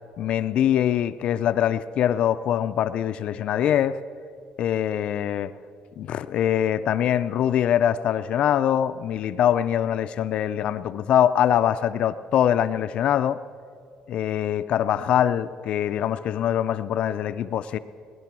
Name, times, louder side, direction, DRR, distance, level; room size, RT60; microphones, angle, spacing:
voice 1, 0.2-4.0 4.6-5.5 6.0-13.4 14.1-17.8, left 10 dB, 50° left, 12 dB, 0.4 m, -23 dB
19.5 x 11.0 x 6.0 m, 2.3 s
cardioid pair, 175°, 2 cm